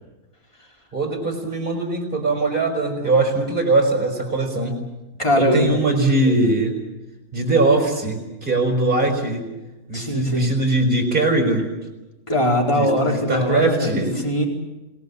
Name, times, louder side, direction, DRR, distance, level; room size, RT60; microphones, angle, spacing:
voice 1, 0.9-4.7 5.4-6.8 7.3-9.5 9.9-11.7 12.7-14.2, right 2 dB, 35° right, 2 dB, 5.4 m, -21 dB
voice 2, 5.2-5.6 6.1-6.3 9.9-10.5 12.3-14.0 14.2-14.5, equal, 20° left, 0 dB, 4.4 m, -21 dB
27.0 x 19.0 x 8.6 m, 1.1 s
omnidirectional pair, 1.6 m